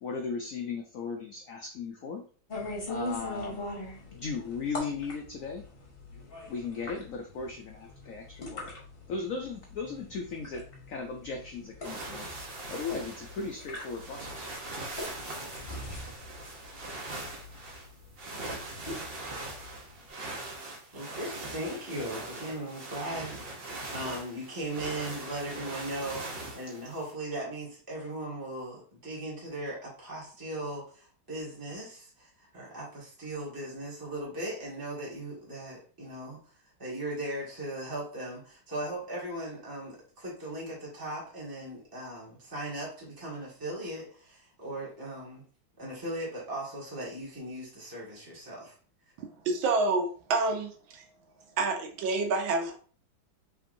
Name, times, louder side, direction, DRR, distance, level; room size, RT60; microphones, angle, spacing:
voice 1, 0.0-2.2 2.9-3.7 4.1-5.7 6.5-8.7 9.1-14.5, left 4 dB, 85° left, 3 dB, 0.7 m, -37 dB
sound 1, 2.5-20.1, left 2 dB, 35° left, 1.3 m, -42 dB
sound 2, 11.8-27.1, right 2 dB, 45° right, 0.7 m, -41 dB
voice 2, 20.9-23.4 23.9-36.5 36.8-45.5 45.8-48.7, right 1 dB, 10° right, -5 dB, 1.5 m, -38 dB
voice 3, 49.2-51.0 51.6-52.8, right 3 dB, 80° right, 4 dB, 1.6 m, -28 dB
5.7 x 3.6 x 2.6 m, 0.42 s
omnidirectional pair, 2.2 m